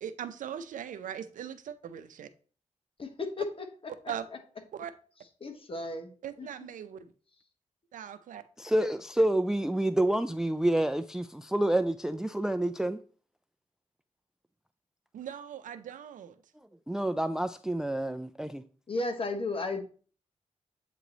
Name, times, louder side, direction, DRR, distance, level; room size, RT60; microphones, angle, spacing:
voice 1, 0.0-2.3 4.1-4.3 4.7-4.9 6.2-7.1 7.9-8.4 15.1-16.4, right 9 dB, 85° right, 0.5 m, -40 dB
voice 2, 3.0-3.9 5.4-6.1 6.4-6.5 18.9-19.8, left 2 dB, 45° left, 1.3 m, -34 dB
voice 3, 8.6-13.0 16.9-18.6, right 1 dB, 5° right, 0.3 m, -28 dB
8.2 x 3.1 x 3.9 m
cardioid pair, 60°, 13 cm